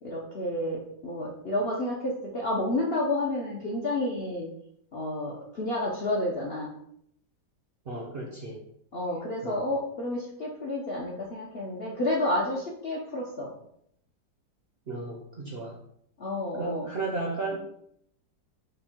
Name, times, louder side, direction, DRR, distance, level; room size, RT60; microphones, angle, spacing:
voice 1, 0.0-4.5 4.9-6.7 8.9-13.5 16.2-16.9, left 1 dB, 70° left, -3 dB, 0.5 m, -30 dB
voice 2, 7.9-8.6 9.4-9.6 14.9-15.8 16.5-17.6, right 3 dB, 60° right, -1 dB, 0.6 m, -34 dB
5.2 x 2.2 x 4.3 m, 0.71 s
omnidirectional pair, 1.9 m